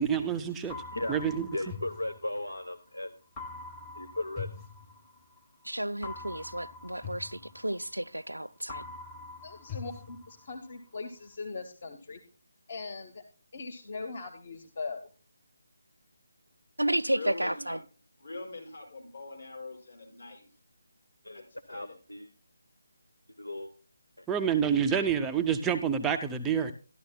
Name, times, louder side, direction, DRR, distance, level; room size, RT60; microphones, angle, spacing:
voice 1, 0.0-0.8 1.1-1.5 24.3-26.7, right 7 dB, 10° right, 0.4 m, -27 dB
sound 1, 0.7-2.8 3.4-5.4 6.0-8.3 8.7-10.8, left 4 dB, 10° left, 0.8 m, -44 dB
voice 2, 0.9-1.2 1.5-3.1 3.9-4.5 21.2-22.3 23.4-23.7 24.2-24.3, left 1 dB, 75° left, 0.8 m, -36 dB
voice 3, 5.6-8.8 16.8-17.8, right 1 dB, 80° right, 0.4 m, -32 dB
voice 4, 9.4-12.2 12.7-13.2 13.5-15.1, left 4 dB, 40° left, 0.9 m, -40 dB
voice 5, 17.1-17.8 18.2-20.5 21.3-22.0, left 3 dB, 60° left, 4.9 m, -42 dB
13.5 x 11.5 x 2.2 m
figure-of-eight pair, 150°, 0 cm